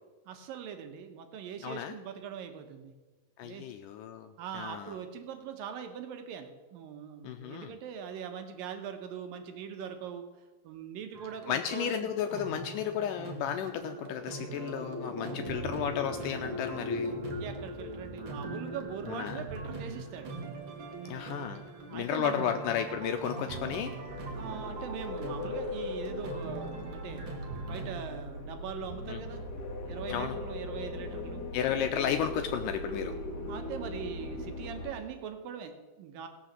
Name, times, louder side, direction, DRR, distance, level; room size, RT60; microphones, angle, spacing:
voice 1, 0.3-2.9 3.4-3.7 4.4-10.3 10.6-12.1 17.4-20.4 21.9-22.5 24.3-27.3 27.6-29.5 29.8-31.4 33.4-36.3, right 7 dB, 80° right, 6 dB, 2.9 m, -41 dB
voice 2, 1.6-1.9 3.4-5.0 7.2-7.7 11.5-17.2 19.0-19.4 21.1-21.6 21.9-23.9 29.1-29.2 30.1-30.4 31.5-33.1, left 9 dB, 80° left, 6 dB, 2.1 m, -33 dB
sound 1, 11.1-28.0, right 3 dB, 50° right, 1.6 m, -42 dB
sound 2, 13.9-24.4, left 2 dB, 10° left, 1.6 m, -42 dB
sound 3, 24.1-34.9, left 1 dB, 45° left, 1.4 m, -39 dB
17.5 x 6.3 x 7.4 m, 1.2 s
omnidirectional pair, 4.0 m